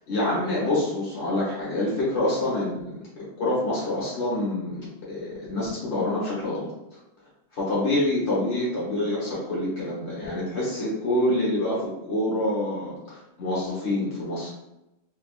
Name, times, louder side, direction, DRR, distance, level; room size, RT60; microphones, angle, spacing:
voice 1, 0.1-3.0 3.4-6.7 7.5-14.5, left 1 dB, 75° left, -7 dB, 1.3 m, -26 dB
3.4 x 2.7 x 2.3 m, 0.91 s
omnidirectional pair, 1.2 m